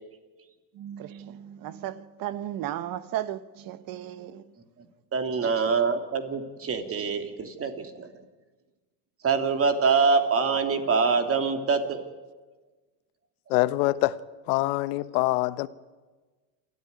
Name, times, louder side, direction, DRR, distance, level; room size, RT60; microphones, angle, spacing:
voice 1, 0.7-4.4 5.4-5.5, right 12 dB, 45° right, 1.3 m, -35 dB
voice 2, 5.1-8.1 9.2-12.0 13.7-13.9, right 5 dB, 30° right, 3.1 m, -25 dB
voice 3, 13.5-14.2 14.5-15.7, left 18 dB, 70° left, 1.2 m, -24 dB
28.0 x 14.0 x 9.7 m
supercardioid pair, 110°, 46 cm